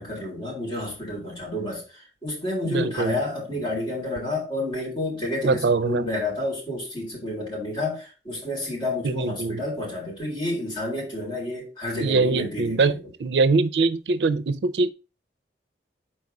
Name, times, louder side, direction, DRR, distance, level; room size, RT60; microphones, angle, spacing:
voice 1, 0.0-13.0, left 1 dB, 30° left, 4.0 m, -30 dB
voice 2, 2.7-3.1 5.4-6.0 9.0-9.6 12.0-12.9 13.2-14.9, right 3 dB, 75° right, 0.5 m, -22 dB
4.7 x 4.5 x 5.3 m
head